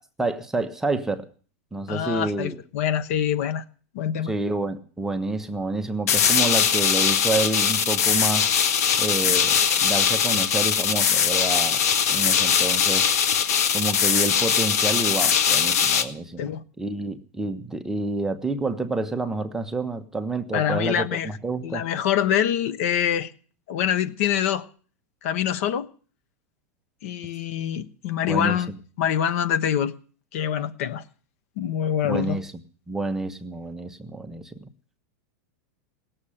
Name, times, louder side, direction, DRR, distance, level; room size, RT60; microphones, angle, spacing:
voice 1, 0.2-1.3 1.7-2.6 4.3-8.5 9.0-11.8 12.1-13.1 13.7-16.5 16.8-21.8 28.3-28.6 32.1-32.5 32.9-34.7, right 2 dB, 5° right, 0.8 m, -28 dB
voice 2, 1.9-3.6 3.9-4.3 16.4-16.6 20.5-21.3 21.6-23.3 23.7-24.6 25.2-25.9 27.0-28.7 29.0-29.9 30.3-31.0 31.6-32.4, left 9 dB, 60° left, 1.1 m, -25 dB
sound 1, 6.1-16.0, left 7 dB, 80° left, 1.6 m, -21 dB
17.5 x 7.4 x 9.9 m
supercardioid pair, 160°, 8 cm